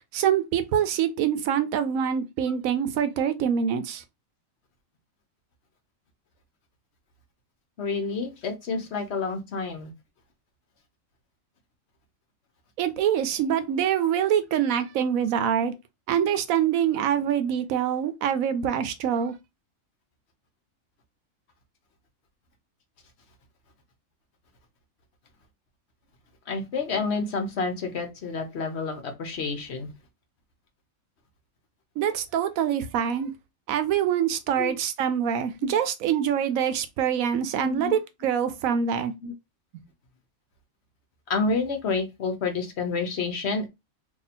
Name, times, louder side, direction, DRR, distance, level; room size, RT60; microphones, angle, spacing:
voice 1, 0.1-4.0 12.8-15.7 16.1-19.3 32.0-33.3 33.7-39.1, right 9 dB, 85° right, 1.0 m, -25 dB
voice 2, 7.8-9.9 26.5-29.9 34.6-34.7 35.6-35.9 37.5-38.0 39.2-39.3 41.3-43.7, left 4 dB, 55° left, 1.0 m, -29 dB
2.8 x 2.7 x 4.2 m
omnidirectional pair, 1.4 m